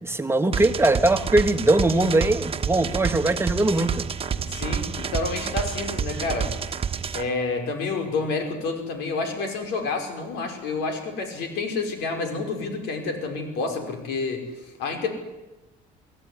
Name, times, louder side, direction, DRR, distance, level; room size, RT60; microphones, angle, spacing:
voice 1, 0.0-4.1, right 2 dB, 15° right, 1.6 m, -21 dB
sound 1, 0.5-7.2, right 7 dB, 35° right, 1.4 m, -29 dB
voice 2, 4.3-6.8 7.1-14.4 14.8-15.1, left 3 dB, 90° left, 5.5 m, -29 dB
24.0 x 16.0 x 10.0 m
cardioid pair, 110°, 17 cm